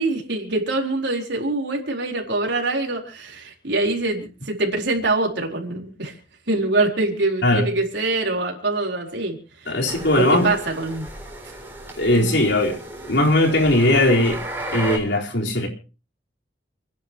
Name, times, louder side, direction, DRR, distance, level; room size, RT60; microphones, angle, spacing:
voice 1, 0.0-6.2 6.5-9.4 9.6-9.7 10.2-11.1 12.1-12.4, right 2 dB, 70° right, 4.3 m, -24 dB
voice 2, 9.7-10.5 12.0-12.8 13.1-14.4 14.7-15.7, left 1 dB, 75° left, 4.3 m, -19 dB
sound 1, 9.9-15.0, right 1 dB, 10° right, 4.0 m, -34 dB
30.0 x 10.5 x 3.0 m
head